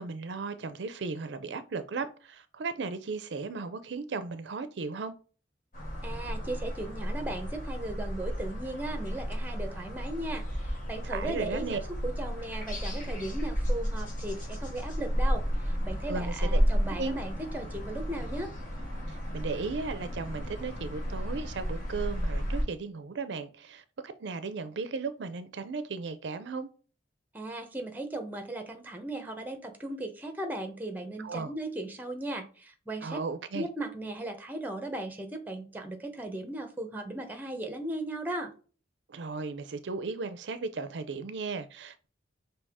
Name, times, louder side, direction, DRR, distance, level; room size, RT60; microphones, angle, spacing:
voice 1, 0.0-5.1 11.0-11.8 16.1-16.5 17.0-17.2 19.1-26.7 31.2-31.5 33.0-33.7 39.1-42.1, right 4 dB, 70° right, 0.5 m, -36 dB
sound 1, 5.7-22.6, equal, 45° left, 1.4 m, -32 dB
voice 2, 6.0-18.5 27.3-33.2 33.5-38.5, right 1 dB, 10° right, 0.7 m, -37 dB
5.4 x 2.8 x 3.5 m
head